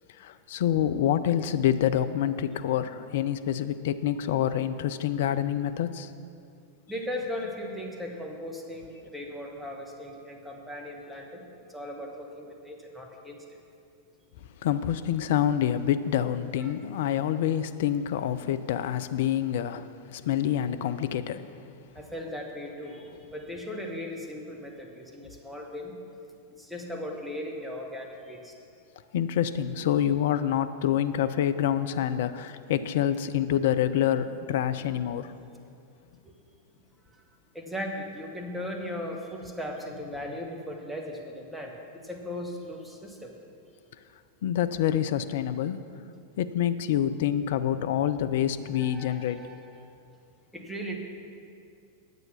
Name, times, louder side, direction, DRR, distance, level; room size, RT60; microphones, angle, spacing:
voice 1, 0.2-6.1 14.6-19.9 20.1-21.5 29.1-35.3 44.4-45.8 46.4-49.4, left 10 dB, 55° left, 11 dB, 0.4 m, -27 dB
voice 2, 6.9-13.4 16.6-16.7 21.9-26.0 26.5-28.6 36.2-36.3 37.1-37.2 37.5-43.3 48.7-49.9 50.5-51.0, left 1 dB, 5° right, 0 dB, 1.4 m, -38 dB
9.5 x 7.9 x 5.7 m, 2.4 s
figure-of-eight pair, 90°, 0 cm